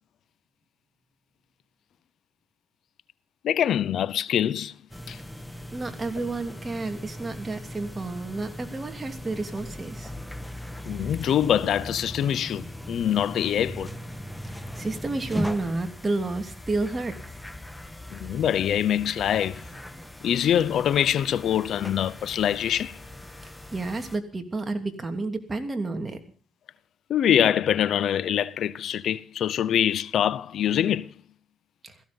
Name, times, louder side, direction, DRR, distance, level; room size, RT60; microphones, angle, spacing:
voice 1, 3.4-4.7 5.1-5.2 10.9-13.9 18.1-19.6 20.2-23.0 27.1-31.1, left 10 dB, 70° left, 0.7 m, -24 dB
sound 1, 4.9-24.2, left 1 dB, 5° left, 1.4 m, -39 dB
voice 2, 5.7-10.1 14.5-17.1 23.7-26.2 31.8-31.9, right 3 dB, 25° right, 2.9 m, -30 dB
17.0 x 15.5 x 5.3 m
cardioid pair, 90°, 0 cm